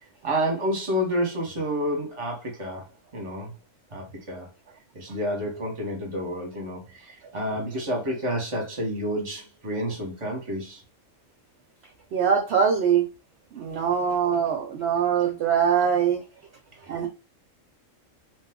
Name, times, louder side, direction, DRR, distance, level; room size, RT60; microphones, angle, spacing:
voice 1, 0.2-2.9 3.1-3.5 3.9-4.5 4.9-10.8, equal, 25° right, 0.9 m, -29 dB
voice 2, 12.1-13.0 13.5-16.2 16.9-17.1, right 7 dB, 65° right, 0.7 m, -23 dB
2.8 x 2.2 x 3.5 m
omnidirectional pair, 1.4 m